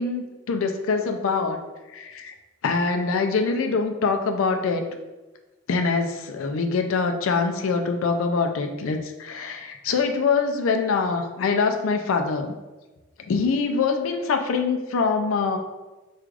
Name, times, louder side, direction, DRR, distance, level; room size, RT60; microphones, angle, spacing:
voice 1, 0.0-1.6 1.9-2.3 2.6-4.8 5.7-12.5 13.3-15.6, left 4 dB, 85° left, 5 dB, 0.4 m, -24 dB
4.6 x 2.4 x 2.4 m, 1.2 s
head